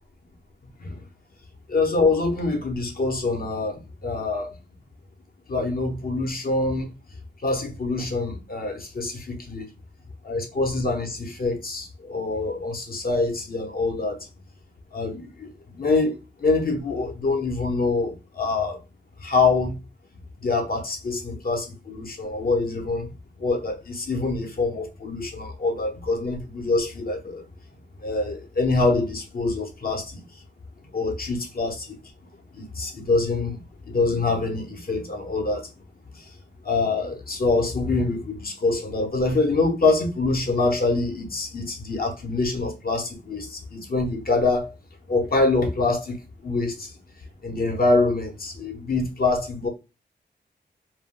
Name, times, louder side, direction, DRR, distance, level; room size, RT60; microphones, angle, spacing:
voice 1, 1.7-4.5 5.5-6.9 7.4-9.7 10.2-14.2 14.9-18.8 19.2-19.8 20.4-23.1 23.4-27.4 28.0-30.2 30.9-32.0 32.5-35.7 36.1-36.2 36.6-44.7 45.1-46.2 46.4-46.9 47.4-49.7, left 3 dB, 55° left, 0.8 m, -25 dB
2.2 x 2.1 x 3.6 m
cardioid pair, 65°, 18 cm